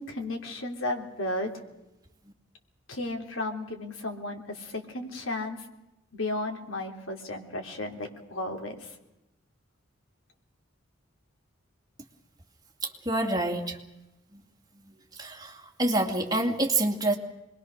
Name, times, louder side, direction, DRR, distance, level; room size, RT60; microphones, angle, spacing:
voice 1, 0.0-1.5 2.9-5.6 6.1-8.9, left 2 dB, 85° left, 2 dB, 3.4 m, -34 dB
voice 2, 13.1-13.6 15.2-15.5 15.8-17.2, right 2 dB, 20° right, 2 dB, 2.5 m, -26 dB
26.0 x 21.5 x 6.6 m, 0.92 s
head